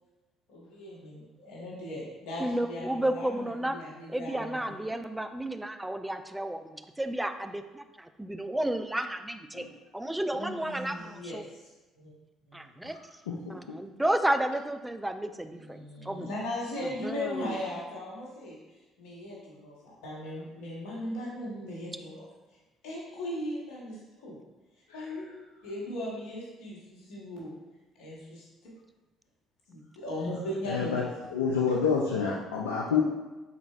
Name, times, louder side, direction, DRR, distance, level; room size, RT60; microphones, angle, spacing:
voice 1, 0.5-4.6 10.3-12.1 15.5-18.6 19.0-22.2 22.8-24.4 24.9-25.3 25.6-27.6 27.9-28.7 29.7-31.0, left 1 dB, 70° left, -5 dB, 1.1 m, -38 dB
voice 2, 2.4-3.8 4.1-9.7 9.9-11.4 12.8-13.0 13.5-16.3 17.0-17.6, right 1 dB, 10° right, 8 dB, 0.3 m, -32 dB
voice 3, 13.3-13.8 30.7-33.0, left 6 dB, 85° left, -3 dB, 0.3 m, -28 dB
4.0 x 4.0 x 2.4 m, 1.1 s
hypercardioid pair, 55°, 0 cm